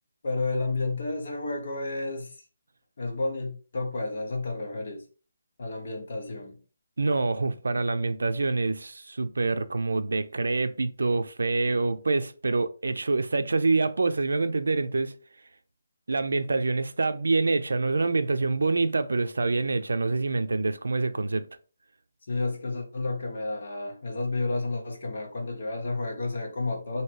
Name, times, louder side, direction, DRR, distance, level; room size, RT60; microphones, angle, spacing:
voice 1, 0.2-2.4 3.0-5.1 5.6-6.6 22.3-27.0, left 3 dB, 35° left, 1.0 m, -31 dB
voice 2, 7.0-15.1 16.1-21.5, right 3 dB, 85° right, 0.5 m, -26 dB
3.1 x 2.8 x 4.4 m
hypercardioid pair, 180°, 0 cm